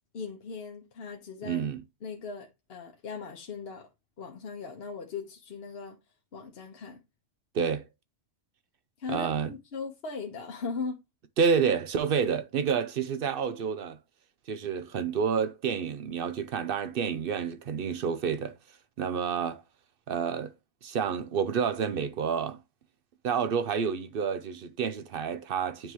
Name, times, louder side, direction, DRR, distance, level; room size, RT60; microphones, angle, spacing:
voice 1, 0.1-1.6 2.0-3.9 4.2-6.0 6.3-7.0 9.0-11.0, left 5 dB, 60° left, 1.1 m, -38 dB
voice 2, 1.4-1.8 7.5-7.9 9.1-9.5 11.4-14.0 14.5-18.6 19.0-19.6 20.1-20.5 20.8-22.6 23.2-25.9, right 6 dB, 60° right, 0.7 m, -29 dB
9.0 x 3.6 x 3.0 m
omnidirectional pair, 1.2 m